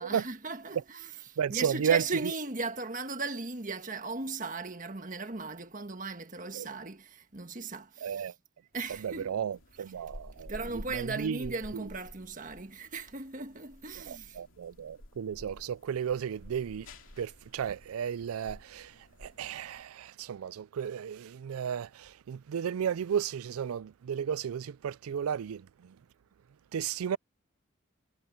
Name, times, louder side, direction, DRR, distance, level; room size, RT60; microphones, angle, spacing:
voice 1, 0.0-8.3 8.7-9.3 10.5-14.4, right 3 dB, 40° right, 1.6 m, -37 dB
voice 2, 1.4-2.0 6.5-6.7 8.0-8.3 9.0-11.9 14.0-16.9 17.2-26.0 26.7-27.2, right 8 dB, 90° right, 0.4 m, -34 dB
sound 1, 8.7-19.8, left 1 dB, 65° left, 2.9 m, -51 dB
head